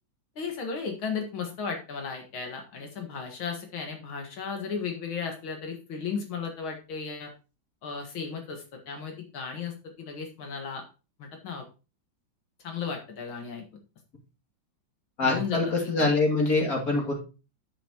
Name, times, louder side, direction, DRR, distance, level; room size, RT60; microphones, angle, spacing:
voice 1, 0.4-7.3 7.8-10.8 11.2-11.7 12.6-13.6 15.2-16.1, left 5 dB, 85° left, 3 dB, 2.4 m, -35 dB
voice 2, 15.2-17.1, left 3 dB, 45° left, 0 dB, 2.9 m, -24 dB
9.1 x 8.3 x 2.9 m, 0.31 s
omnidirectional pair, 2.2 m